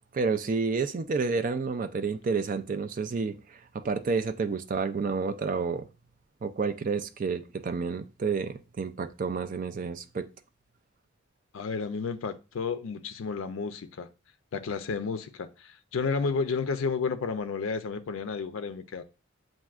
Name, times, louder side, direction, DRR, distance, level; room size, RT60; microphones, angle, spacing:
voice 1, 0.1-5.9 6.4-10.3, right 4 dB, 40° right, 0.3 m, -30 dB
voice 2, 11.5-14.1 14.5-19.0, left 5 dB, 80° left, 0.4 m, -31 dB
7.2 x 2.5 x 2.4 m
head